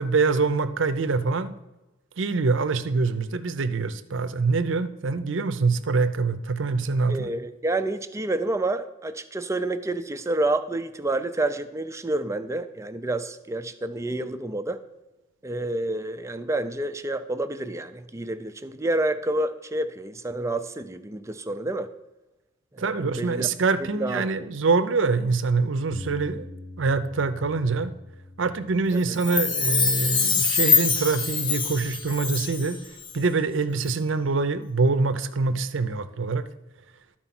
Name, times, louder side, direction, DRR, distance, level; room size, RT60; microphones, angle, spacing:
voice 1, 0.0-1.5 2.2-7.3 22.8-26.5 26.8-27.9 28.4-32.8 33.1-36.5, right 4 dB, 70° right, 12 dB, 0.6 m, -25 dB
voice 2, 7.1-14.8 15.4-21.9 22.7-23.5 23.9-24.5 28.9-29.2, right 2 dB, 15° right, 10 dB, 0.5 m, -29 dB
Bass guitar, 25.9-32.2, left 2 dB, 60° left, 1.0 m, -45 dB
Chime, 29.1-32.7 33.0-33.1, left 4 dB, 25° left, 0.8 m, -24 dB
12.0 x 4.4 x 5.9 m, 1.0 s
head